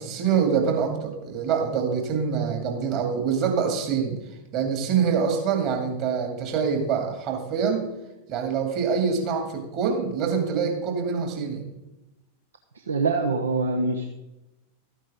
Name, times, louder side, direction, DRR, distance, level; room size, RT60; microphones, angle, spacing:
voice 1, 0.0-4.2 4.5-7.9 8.3-11.7, right 6 dB, 40° right, 3 dB, 2.4 m, -25 dB
voice 2, 12.7-14.1, right 3 dB, 70° right, 6 dB, 0.8 m, -24 dB
13.0 x 9.2 x 3.7 m, 0.96 s
figure-of-eight pair, 90°, 0 cm